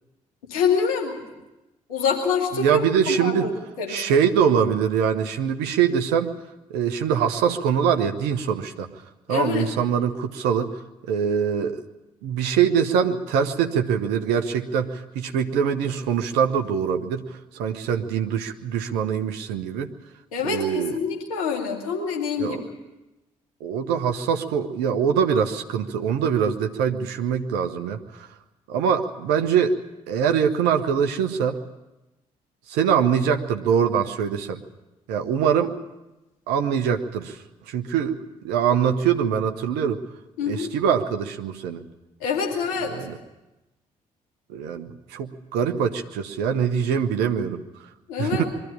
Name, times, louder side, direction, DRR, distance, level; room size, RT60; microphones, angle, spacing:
voice 1, 0.5-1.2 1.9-2.8 3.1-3.4 3.8-4.0 9.3-9.7 20.3-22.6 40.4-40.7 42.2-42.9 48.1-48.4, left 6 dB, 75° left, 0 dB, 2.6 m, -25 dB
voice 2, 2.5-3.6 3.9-6.4 6.7-8.9 9.3-10.7 11.1-11.8 12.2-19.9 20.4-21.0 22.4-22.6 23.6-28.3 28.7-29.7 30.1-31.6 32.7-34.6 35.1-35.8 36.5-40.0 40.5-41.9 42.9-43.2 44.5-47.6 48.2-48.4, right 7 dB, 65° right, 7 dB, 1.1 m, -23 dB
22.5 x 13.5 x 8.7 m, 1.0 s
figure-of-eight pair, 40°, 18 cm